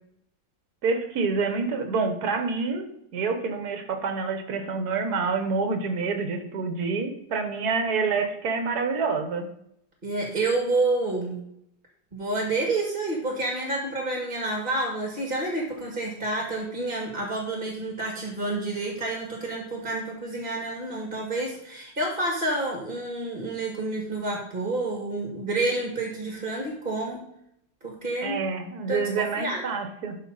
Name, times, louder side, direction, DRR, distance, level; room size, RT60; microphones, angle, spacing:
voice 1, 0.8-2.9 3.1-9.5 28.2-30.2, right 4 dB, 60° right, 7 dB, 1.7 m, -27 dB
voice 2, 10.0-11.4 12.1-27.2 27.8-28.4 28.9-29.0 29.4-29.6, right 2 dB, 30° right, 0 dB, 2.0 m, -29 dB
12.5 x 5.6 x 4.1 m, 0.76 s
omnidirectional pair, 1.9 m